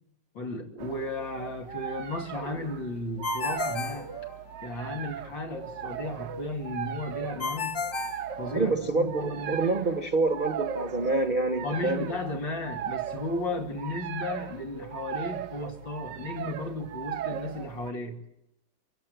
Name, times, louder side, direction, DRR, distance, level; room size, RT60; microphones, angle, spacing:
voice 1, 0.4-4.1 4.6-7.8 8.4-9.6 11.6-18.2, left 2 dB, 85° left, 2 dB, 3.3 m, -34 dB
sound 1, 0.8-17.9, right 9 dB, 75° right, 1.6 m, -38 dB
Ringtone, 3.2-4.9 7.4-9.0, left 5 dB, 40° left, 0.9 m, -33 dB
voice 2, 8.5-12.1, right 3 dB, 30° right, 7 dB, 1.1 m, -27 dB
24.5 x 16.5 x 8.0 m, 0.83 s
omnidirectional pair, 2.0 m